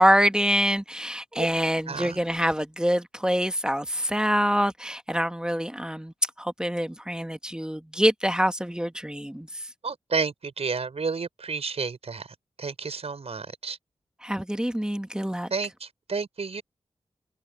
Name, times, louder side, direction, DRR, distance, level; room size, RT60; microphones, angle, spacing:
voice 1, 0.0-9.6 14.2-15.5, equal, 5° right, 1.6 m, -25 dB
voice 2, 1.9-2.2 9.8-12.3 12.6-13.8 15.5-16.6, right 4 dB, 65° right, 5.6 m, -31 dB
cardioid pair, 40°, 11 cm